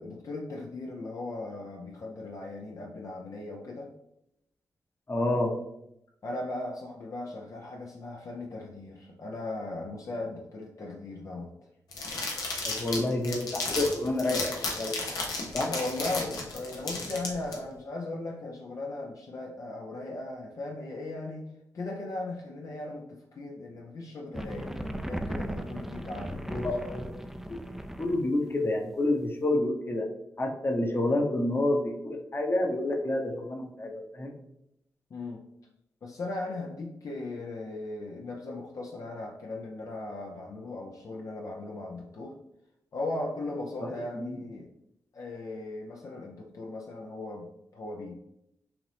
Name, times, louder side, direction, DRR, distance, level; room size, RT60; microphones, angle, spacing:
voice 1, 0.0-3.9 6.2-11.5 15.7-21.5 21.7-26.9 31.0-31.3 35.1-35.4 36.0-42.4 42.9-44.7 45.1-47.5 47.7-48.1, left 2 dB, 60° left, -1 dB, 0.7 m, -38 dB
voice 2, 5.1-5.5 12.6-14.9 15.5-15.7 26.5-27.1 27.5-27.6 28.0-30.1 30.4-34.3 43.8-44.4, left 1 dB, 35° left, 2 dB, 1.0 m, -29 dB
sound 1, 11.9-17.5, left 3 dB, 85° left, 0.9 m, -34 dB
sound 2, 24.3-28.3, equal, 5° right, 0.4 m, -36 dB
5.8 x 2.6 x 3.4 m, 0.81 s
cardioid pair, 55°, 6 cm